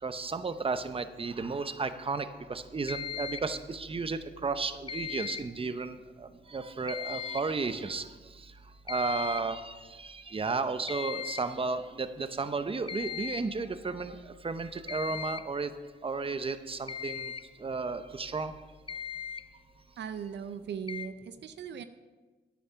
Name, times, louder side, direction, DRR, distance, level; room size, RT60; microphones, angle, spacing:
voice 1, 0.0-8.1 8.9-14.2 14.4-15.7 16.0-17.3 17.6-18.5, right 4 dB, 30° right, 11 dB, 0.7 m, -33 dB
sound 1, 2.9-3.6 4.9-5.6 6.9-7.6 8.9-9.6 10.9-11.6 12.9-13.6 14.9-15.6 16.9-17.5 18.5-18.6 18.9-19.5 20.9-21.1, left 7 dB, 30° left, 0.4 m, -38 dB
voice 2, 20.0-21.8, right 7 dB, 80° right, 10 dB, 0.5 m, -38 dB
9.7 x 8.5 x 5.6 m, 1.3 s
cardioid pair, 65°, 18 cm